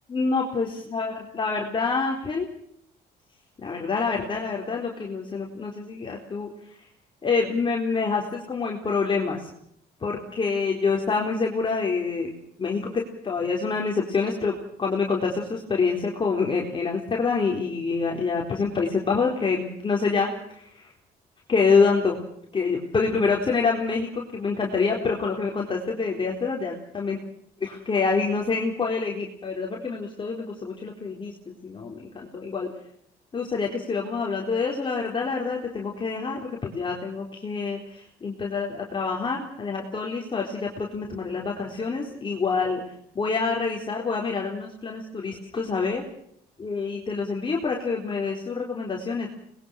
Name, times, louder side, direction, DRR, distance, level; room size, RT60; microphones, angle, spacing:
voice 1, 0.1-2.5 3.6-6.5 7.2-9.5 10.0-12.3 12.6-20.9 21.5-22.2 22.5-27.2 27.6-32.7 33.3-42.8 43.1-46.0 46.6-49.3, left 4 dB, 30° left, -1 dB, 3.9 m, -26 dB
25.5 x 21.0 x 6.4 m, 0.69 s
cardioid pair, 110°, 17 cm